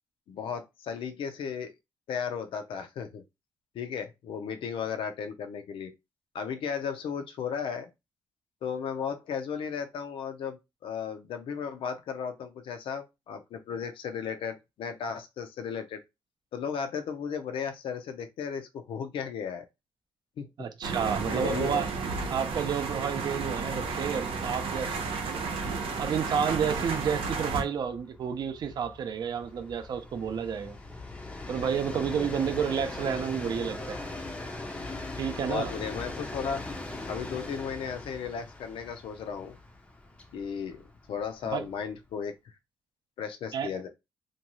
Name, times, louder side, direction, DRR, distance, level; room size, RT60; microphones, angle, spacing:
voice 1, 0.3-1.7 2.1-3.2 3.7-5.9 6.3-7.9 8.6-16.0 16.5-19.7 20.4-20.7 21.3-21.9 35.5-36.6 37.1-39.6 40.3-40.8 41.1-42.5 43.2-43.9, left 7 dB, 70° left, 0.5 m, -35 dB
voice 2, 20.6-21.9 22.3-24.9 25.2-25.4 26.0-30.8 31.5-34.0 35.2-35.7 41.4-41.7 43.5-43.7, right 7 dB, 50° right, 0.5 m, -30 dB
sound 1, 20.8-27.6, right 4 dB, 75° right, 0.8 m, -32 dB
Train, 23.8-24.0 24.3-24.4 24.7-42.1, left 2 dB, 10° left, 0.5 m, -41 dB
2.6 x 2.3 x 2.9 m
cardioid pair, 155°, 9 cm